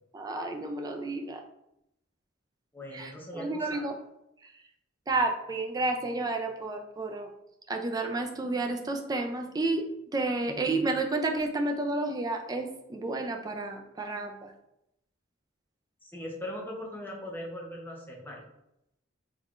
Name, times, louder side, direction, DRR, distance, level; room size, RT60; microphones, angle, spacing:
voice 1, 0.1-1.4 2.9-4.0 4.4-4.5 5.1-7.3 7.7-9.8 10.1-14.5, right 2 dB, 20° right, 3 dB, 0.3 m, -31 dB
voice 2, 2.7-3.9 16.0-18.4, left 1 dB, 10° left, -2 dB, 0.7 m, -40 dB
3.6 x 3.2 x 2.4 m, 0.83 s
head